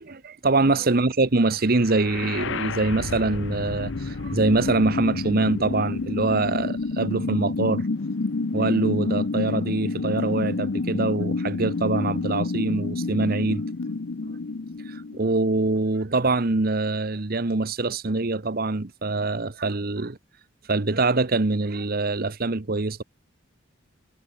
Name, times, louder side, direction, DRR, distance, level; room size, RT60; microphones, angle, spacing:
voice 1, 0.0-7.9 8.5-13.6 14.9-20.2 20.7-23.0, right 3 dB, 45° right, 1.0 m, -24 dB
sound 1, 1.7-15.7, left 3 dB, 65° left, 0.7 m, -29 dB
head